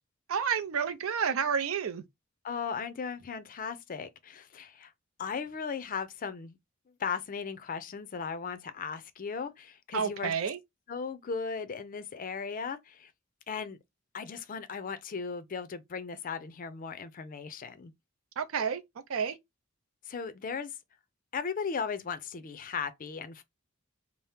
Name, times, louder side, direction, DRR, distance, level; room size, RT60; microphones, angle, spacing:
voice 1, 0.3-2.0 9.9-10.6 18.4-18.8 19.1-19.4, right 6 dB, 80° right, 0.5 m, -30 dB
voice 2, 2.4-4.9 5.2-6.6 7.0-10.3 10.9-13.1 13.5-13.8 14.1-17.9 20.1-20.7 21.3-23.4, left 5 dB, 40° left, 0.4 m, -37 dB
2.8 x 2.0 x 3.3 m
head